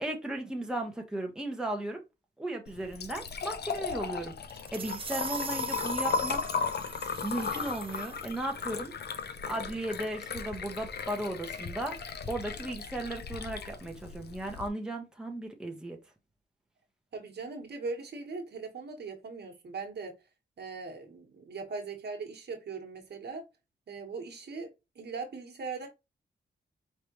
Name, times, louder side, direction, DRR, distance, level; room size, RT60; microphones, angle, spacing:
voice 1, 0.0-2.0 2.4-4.3 4.7-6.4 7.2-8.9 9.5-12.0 12.3-16.0, right 1 dB, 5° right, 1.1 m, -36 dB
Liquid, 2.7-14.7, left 5 dB, 60° left, 0.7 m, -36 dB
sound 1, 4.4-8.4, right 5 dB, 30° right, 0.4 m, -42 dB
voice 2, 17.1-20.2 20.6-23.5 23.9-25.9, right 4 dB, 60° right, 1.4 m, -40 dB
5.0 x 3.3 x 3.0 m
wide cardioid pair, 110°, 19 cm